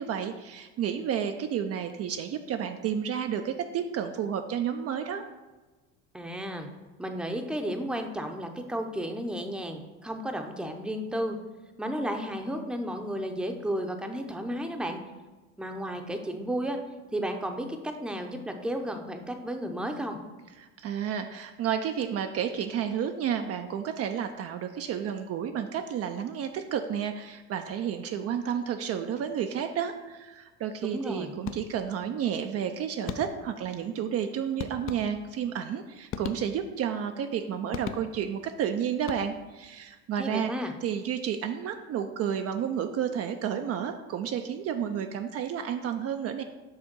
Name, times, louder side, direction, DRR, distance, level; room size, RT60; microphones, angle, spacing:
voice 1, 0.0-5.3 20.6-46.4, right 8 dB, 45° right, 6 dB, 0.5 m, -31 dB
voice 2, 6.1-6.7 7.0-11.4 11.8-15.0 15.6-16.8 17.1-20.2 30.9-31.3 40.2-40.7, equal, 5° right, 5 dB, 0.7 m, -33 dB
sound 1, 31.4-32.0 33.1-33.6 34.6-35.5 36.1-36.9 37.7-38.4 39.0-39.6, left 8 dB, 40° left, 0.5 m, -39 dB
6.5 x 3.5 x 6.1 m, 1.2 s
supercardioid pair, 90°, 35 cm